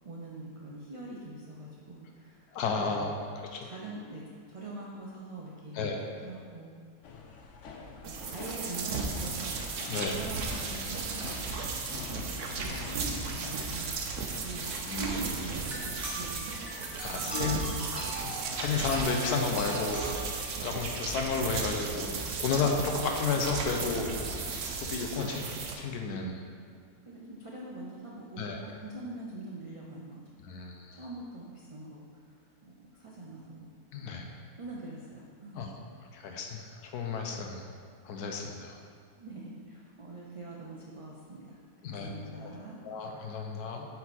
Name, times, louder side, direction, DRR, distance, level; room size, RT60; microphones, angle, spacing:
voice 1, 0.0-2.5 2.8-3.2 3.6-6.7 8.0-11.5 11.9-14.7 14.9-15.6 16.1-16.5 17.1-17.8 27.1-30.2 30.9-33.7 34.0-34.1 34.6-35.8 39.2-41.6 41.9-42.8, right 2 dB, 40° right, -4 dB, 0.4 m, -44 dB
voice 2, 2.5-3.1 3.4-3.7 5.7-6.0 9.9-10.2 14.6-15.1 17.0-17.6 18.2-20.2 20.6-24.3 24.7-26.4 28.4-28.6 30.5-31.0 33.9-34.2 35.6-35.7 36.1-37.6 38.1-38.8 41.8-42.1 42.4-42.5 42.8-43.9, left 5 dB, 85° left, 2 dB, 1.3 m, -32 dB
sound 1, 7.0-13.6, left 4 dB, 60° left, 0.9 m, -46 dB
sound 2, 8.0-25.8, right 4 dB, 60° right, 1.0 m, -35 dB
sound 3, 15.7-20.7, right 2 dB, ahead, 1.0 m, -41 dB
8.2 x 4.5 x 4.2 m, 2.2 s
omnidirectional pair, 1.6 m